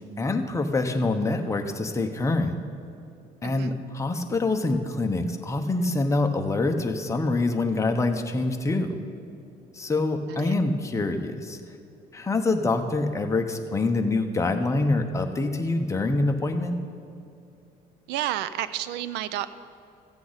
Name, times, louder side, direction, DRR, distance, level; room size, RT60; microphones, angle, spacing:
voice 1, 0.2-2.6 3.4-9.0 9.7-11.6 12.1-16.8, left 2 dB, 15° left, 4 dB, 0.9 m, -25 dB
voice 2, 3.4-3.8 10.3-10.5 18.1-19.5, right 12 dB, 90° right, 14 dB, 0.5 m, -31 dB
14.5 x 8.3 x 4.0 m, 2.6 s
cardioid pair, 110°, 17 cm